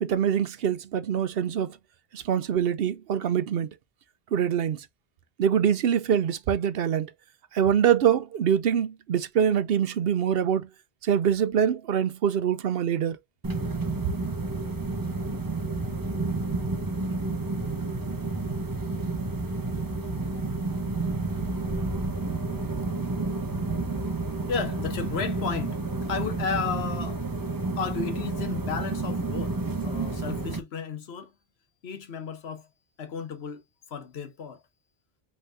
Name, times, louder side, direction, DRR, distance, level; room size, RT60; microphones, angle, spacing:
voice 1, 0.0-1.8 2.1-3.7 4.3-4.9 5.4-7.1 7.5-10.7 11.0-13.2, right 8 dB, 70° right, 0.8 m, -24 dB
sound 1, 13.4-30.6, right 3 dB, 20° right, 0.7 m, -30 dB
voice 2, 24.5-25.8 26.1-27.2 27.8-29.6 29.8-31.3 31.8-32.7 33.0-33.6 33.9-34.6, left 6 dB, 75° left, 1.2 m, -33 dB
5.6 x 3.5 x 2.5 m
omnidirectional pair, 1.1 m